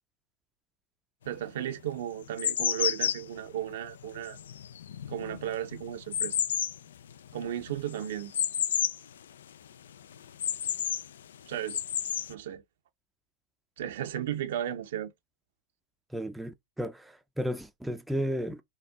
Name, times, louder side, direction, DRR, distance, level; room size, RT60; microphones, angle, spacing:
sound 1, 1.3-1.4 2.0-9.1 9.4-9.5 9.9-11.1 11.5-12.3, left 9 dB, 85° left, 0.3 m, -31 dB
voice 1, 1.3-4.4 5.1-6.4 7.3-8.3 11.5-11.8 12.3-12.6 13.8-15.1, right 11 dB, 75° right, 0.8 m, -34 dB
voice 2, 16.1-18.6, equal, 5° right, 0.5 m, -33 dB
4.2 x 2.4 x 3.6 m
hypercardioid pair, 115°, 0 cm